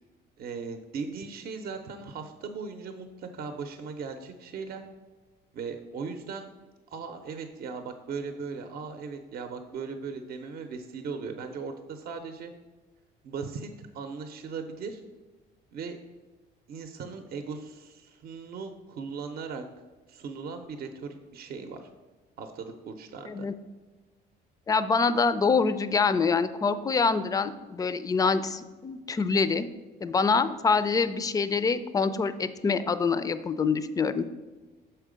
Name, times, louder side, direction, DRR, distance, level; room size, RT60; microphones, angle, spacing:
voice 1, 0.4-4.8 5.5-6.5 6.9-12.5 13.2-15.0 15.7-16.0 16.7-19.6 20.1-21.8 22.4-23.5, right 5 dB, 60° right, 7 dB, 0.6 m, -38 dB
voice 2, 24.7-29.7 30.0-34.3, left 4 dB, 20° left, 13 dB, 0.3 m, -25 dB
6.6 x 4.5 x 5.0 m, 1.2 s
cardioid pair, 130°, 18 cm